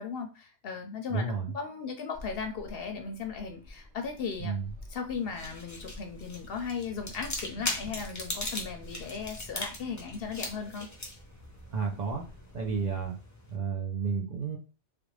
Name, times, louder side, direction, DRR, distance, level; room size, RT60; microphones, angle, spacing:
voice 1, 0.0-1.2 1.5-4.5 4.9-10.9, left 5 dB, 60° left, 5 dB, 0.7 m, -37 dB
voice 2, 1.1-1.5 4.4-4.7 7.7-8.0 11.7-12.2 12.5-13.2 13.5-14.6, right 5 dB, 45° right, 0 dB, 0.6 m, -32 dB
sound 1, 2.1-13.1, left 1 dB, 75° right, 1.5 m, -50 dB
sound 2, 5.1-13.6, left 2 dB, 20° left, 0.5 m, -40 dB
3.4 x 2.5 x 3.2 m, 0.33 s
omnidirectional pair, 1.2 m